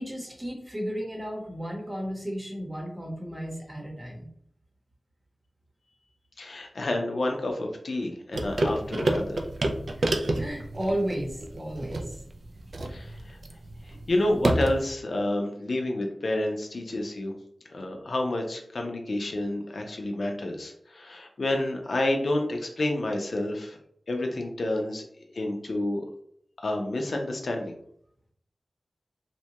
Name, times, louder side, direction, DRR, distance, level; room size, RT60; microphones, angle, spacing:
voice 1, 0.0-4.3 10.0-12.2 13.9-14.0, equal, 25° right, 0 dB, 0.8 m, -34 dB
voice 2, 6.4-9.4 12.9-13.4 13.9-17.3 17.7-23.8 24.1-25.0 25.3-26.0 26.6-27.8, left 1 dB, 65° left, 2 dB, 0.5 m, -29 dB
sound 1, 8.3-14.9, right 1 dB, 70° right, 0.3 m, -29 dB
2.7 x 2.2 x 2.8 m, 0.68 s
wide cardioid pair, 95°, 0 cm